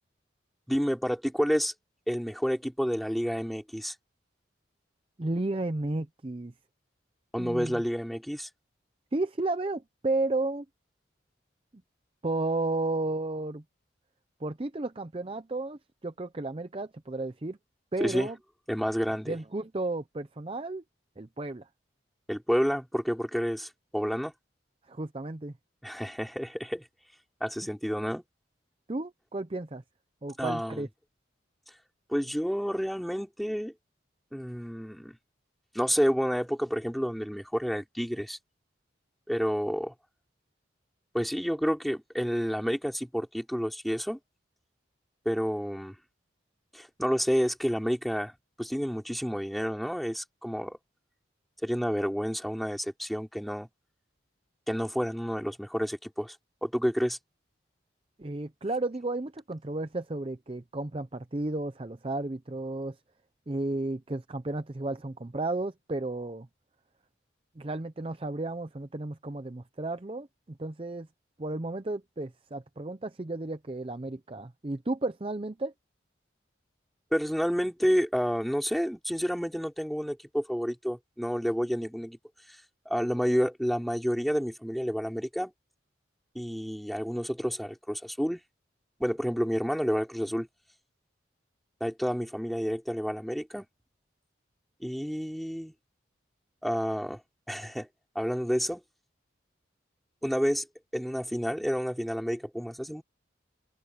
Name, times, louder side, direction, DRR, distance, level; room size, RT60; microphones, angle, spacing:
voice 1, 0.7-1.7 2.1-3.9 7.3-8.5 18.0-18.3 18.7-19.3 22.3-24.3 25.8-26.9 27.4-28.2 30.4-30.9 32.1-33.7 34.3-35.2 35.7-38.4 39.3-39.9 41.1-44.2 45.2-46.0 46.7-50.8 51.6-53.7 54.7-56.4 56.6-57.2 77.1-82.2 82.5-82.6 82.8-85.5 86.3-88.4 89.0-90.5 91.8-93.6 94.8-95.7 96.6-97.2 97.5-97.9 98.1-98.8 100.2-100.7 100.9-103.0, equal, ahead, 3.4 m, -29 dB
voice 2, 5.2-6.5 7.4-7.8 9.1-10.7 12.2-13.6 14.4-17.6 17.9-18.4 19.3-20.8 21.2-21.7 24.9-25.5 28.9-29.8 30.2-30.9 58.2-63.0 63.5-66.5 67.6-71.1 71.4-75.7, right 2 dB, 30° right, 0.6 m, -33 dB
head